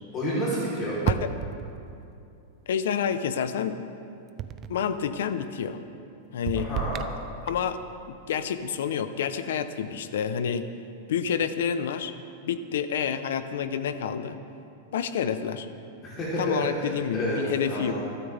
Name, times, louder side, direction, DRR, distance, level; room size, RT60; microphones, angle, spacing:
voice 1, 0.1-1.0 6.6-7.0 16.0-17.9, right 1 dB, 25° left, -8 dB, 3.9 m, -30 dB
sound 1, 1.1-2.1 4.4-4.9 6.5-7.8, right 9 dB, 30° right, 0.5 m, -32 dB
voice 2, 2.7-3.8 4.7-5.8 6.3-6.7 7.4-7.8 8.1-10.6 11.1-12.1 12.4-14.4 14.9-15.7 16.4-17.9, left 8 dB, 80° left, 10 dB, 0.9 m, -28 dB
24.5 x 12.5 x 3.6 m, 2.6 s
supercardioid pair, 160°, 0 cm